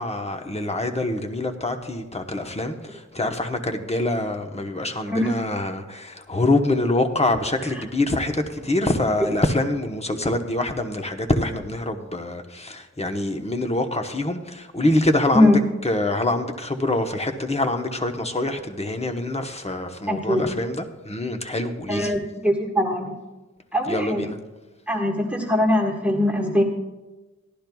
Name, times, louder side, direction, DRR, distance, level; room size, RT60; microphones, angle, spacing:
voice 1, 0.0-15.5 15.8-22.2 23.9-24.4, left 2 dB, 20° left, 5 dB, 1.0 m, -25 dB
voice 2, 20.1-20.4 21.9-23.1 23.7-24.3 24.9-26.6, left 1 dB, 5° right, 0 dB, 1.5 m, -21 dB
17.5 x 12.0 x 2.3 m, 1.1 s
wide cardioid pair, 55°, 29 cm